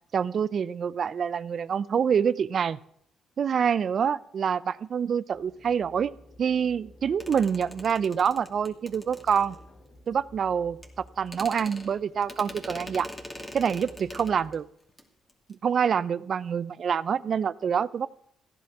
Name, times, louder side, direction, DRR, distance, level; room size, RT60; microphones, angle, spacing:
voice 1, 0.1-2.8 3.4-6.1 6.4-9.6 10.1-10.8 11.2-13.1 13.5-14.6 15.5-18.1, right 7 dB, 55° right, 18 dB, 0.6 m, -26 dB
sound 1, 5.3-14.6, left 1 dB, 50° left, 2.8 m, -53 dB
sound 2, 7.2-9.9 10.8-10.9 11.3-14.6 14.9-15.0 15.3-15.5, left 1 dB, 15° left, 2.5 m, -43 dB
15.5 x 10.5 x 6.0 m, 0.69 s
cardioid pair, 90°, 0 cm